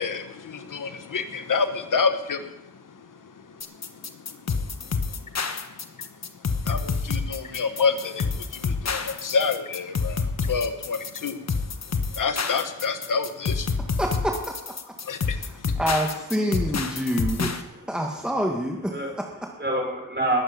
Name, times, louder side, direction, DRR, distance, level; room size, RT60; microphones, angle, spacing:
voice 1, 0.0-13.9 15.0-15.7, left 5 dB, 70° left, 8 dB, 1.2 m, -29 dB
sound 1, 3.6-17.6, left 5 dB, 55° left, 1.3 m, -28 dB
voice 2, 14.0-14.3 15.4-17.6 17.9-18.9, equal, 5° right, 0 dB, 1.9 m, -26 dB
voice 3, 18.9-20.4, right 1 dB, 35° right, 1 dB, 5.2 m, -28 dB
20.5 x 8.6 x 5.4 m, 0.88 s
cardioid pair, 60°, 32 cm